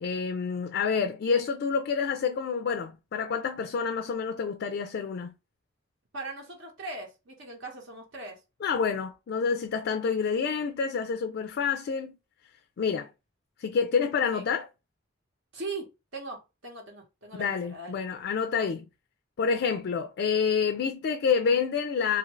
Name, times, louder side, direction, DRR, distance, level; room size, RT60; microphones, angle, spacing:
voice 1, 0.0-5.3 8.6-12.2 12.8-13.1 13.6-14.7 17.4-18.8 19.4-22.2, left 6 dB, 55° left, 0.3 m, -28 dB
voice 2, 6.1-8.4 14.3-14.4 15.5-15.9 16.1-18.0, right 2 dB, 70° right, 1.0 m, -39 dB
2.7 x 2.5 x 3.0 m
head